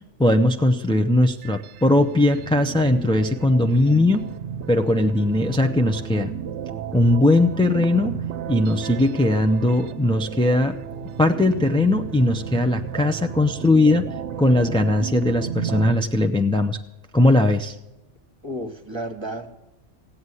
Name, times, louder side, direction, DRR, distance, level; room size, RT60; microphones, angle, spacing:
voice 1, 0.2-4.2 4.7-6.3 6.9-8.1 8.5-10.7 11.2-14.0 14.4-16.8 17.1-17.8, left 1 dB, 5° left, 4 dB, 0.3 m, -19 dB
sound 1, 1.3-15.9, right 8 dB, 70° right, 1.0 m, -33 dB
voice 2, 18.4-19.5, right 1 dB, 25° right, 7 dB, 1.3 m, -32 dB
16.0 x 8.6 x 9.7 m, 0.97 s
omnidirectional pair, 1.2 m